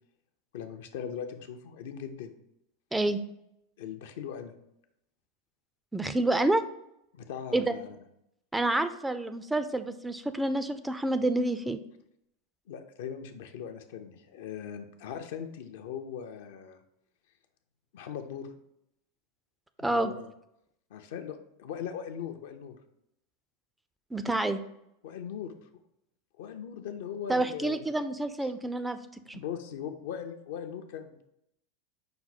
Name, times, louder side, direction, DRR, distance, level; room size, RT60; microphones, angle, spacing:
voice 1, 0.5-2.3 3.8-4.5 7.1-7.9 12.7-16.8 17.9-18.5 19.8-20.3 20.9-22.8 25.0-25.5 26.4-27.8 29.3-31.3, left 8 dB, 70° left, 6 dB, 0.5 m, -39 dB
voice 2, 5.9-6.6 7.5-7.8 8.5-11.8 19.8-20.1 24.1-24.6 27.3-29.0 29.3-29.4, right 2 dB, 10° right, 10 dB, 0.3 m, -28 dB
5.6 x 2.1 x 4.1 m, 0.80 s
hypercardioid pair, 100°, 0 cm